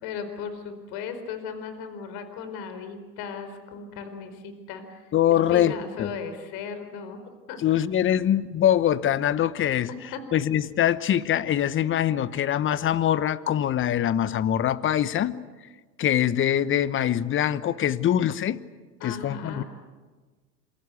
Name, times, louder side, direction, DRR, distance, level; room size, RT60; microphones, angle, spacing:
voice 1, 0.0-5.1 5.5-7.6 8.1-8.2 10.1-10.2 19.0-19.6, left 6 dB, 50° left, 9 dB, 4.6 m, -36 dB
voice 2, 5.1-5.7 6.0-6.1 7.6-9.9 10.3-15.4 16.0-18.6 19.0-19.6, left 11 dB, 25° left, 16 dB, 1.0 m, -23 dB
27.5 x 23.0 x 8.4 m, 1.3 s
hypercardioid pair, 100°, 49 cm